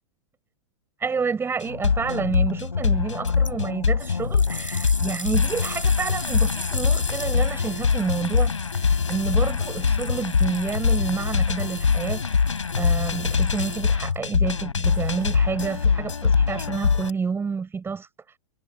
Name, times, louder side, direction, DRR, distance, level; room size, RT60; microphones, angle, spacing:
voice 1, 1.0-18.1, right 5 dB, 15° right, 7.6 m, -29 dB
sound 1, 1.6-17.1, left 5 dB, 75° left, 4.5 m, -23 dB
sound 2, 3.3-3.5 4.0-14.2 14.9-15.0, left 1 dB, 90° left, 4.8 m, -39 dB
figure-of-eight pair, 100°, 16 cm